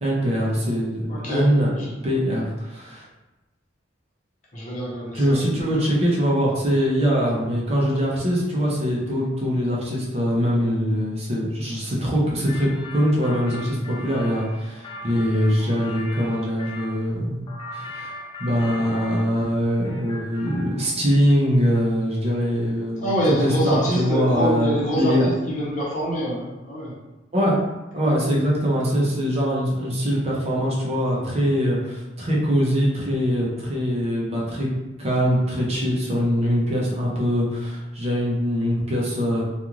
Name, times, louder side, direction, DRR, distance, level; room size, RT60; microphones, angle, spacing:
voice 1, 0.0-1.7 2.0-3.0 5.1-17.5 17.7-25.3 27.3-27.6 27.9-34.7 35.0-39.4, equal, 35° right, -5 dB, 0.6 m, -22 dB
voice 2, 1.1-1.5 1.7-1.9 4.5-5.4 5.7-5.8 23.0-26.9, equal, 40° left, -6 dB, 0.9 m, -25 dB
sound 1, 12.5-16.9 17.5-19.6 19.8-20.8, left 2 dB, 25° left, 0.4 m, -39 dB
2.4 x 2.4 x 3.0 m, 1.1 s
head